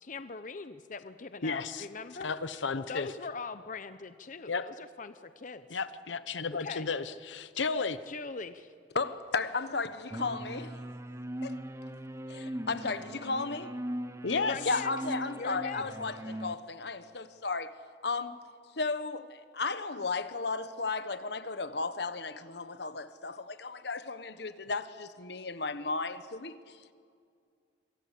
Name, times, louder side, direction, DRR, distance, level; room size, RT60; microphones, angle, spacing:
voice 1, 0.0-2.3 2.9-5.8 6.6-6.9 8.1-8.7 14.3-14.9 15.3-15.8, left 4 dB, 45° left, 11 dB, 0.7 m, -41 dB
voice 2, 1.4-1.9 2.2-3.1 4.5-4.7 5.7-8.0 14.2-14.6, left 4 dB, 85° left, 13 dB, 0.9 m, -33 dB
voice 3, 8.9-10.8 11.4-11.6 12.3-13.8 14.6-17.7 18.0-18.4 18.7-26.9, left 3 dB, 60° left, 12 dB, 1.2 m, -34 dB
sound 1, 10.1-16.6, right 1 dB, 15° right, 0.8 m, -40 dB
26.5 x 24.5 x 8.4 m, 2.2 s
head